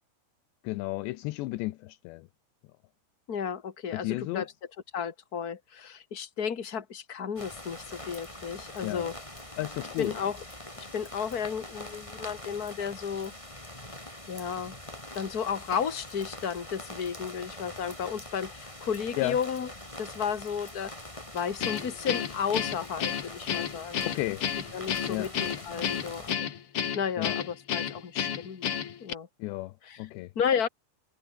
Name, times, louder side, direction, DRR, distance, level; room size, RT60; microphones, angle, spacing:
voice 1, 0.6-2.3 3.9-4.5 8.8-9.1 9.6-10.2 19.2-19.4 24.0-24.4 25.1-25.3 27.2-27.4 29.4-30.3, left 19 dB, 80° left, 3.0 m, -33 dB
voice 2, 3.3-4.5 4.9-9.1 10.0-10.4 10.8-13.3 14.3-14.7 15.1-19.7 20.0-20.9 21.3-24.1 24.7-26.5 26.8-29.3 29.8-30.0 30.3-30.7, left 7 dB, 40° left, 1.4 m, -33 dB
sound 1, 7.4-26.3, left 1 dB, 5° left, 4.3 m, -44 dB
Guitar, 21.6-29.1, left 8 dB, 65° left, 1.3 m, -31 dB
omnidirectional pair, 5.1 m